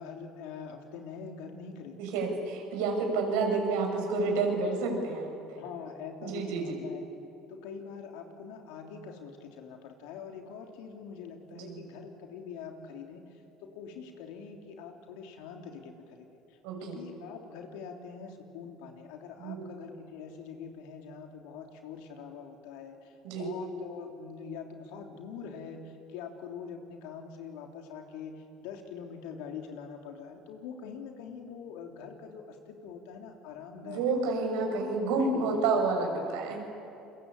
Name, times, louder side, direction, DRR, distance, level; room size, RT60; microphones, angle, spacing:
voice 1, 0.0-2.0 2.3-2.4 3.1-3.3 5.6-7.1 7.5-34.3 34.7-35.6, left 6 dB, 80° left, 3 dB, 3.4 m, -44 dB
voice 2, 2.0-5.6 6.2-6.6 11.6-11.8 16.6-17.0 19.4-19.7 23.2-23.5 33.8-36.6, right 3 dB, 80° right, 2 dB, 6.5 m, -29 dB
28.5 x 23.0 x 8.6 m, 2.8 s
supercardioid pair, 85°, 0 cm